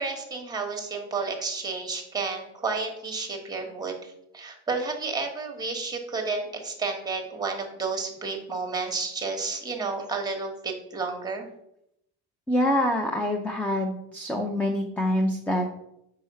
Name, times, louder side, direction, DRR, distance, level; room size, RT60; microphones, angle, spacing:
voice 1, 0.0-11.5, right 4 dB, 15° right, 3 dB, 1.2 m, -31 dB
voice 2, 12.5-15.7, left 1 dB, 5° left, 2 dB, 0.5 m, -25 dB
4.8 x 4.7 x 5.5 m, 0.78 s
cardioid pair, 135°, 30 cm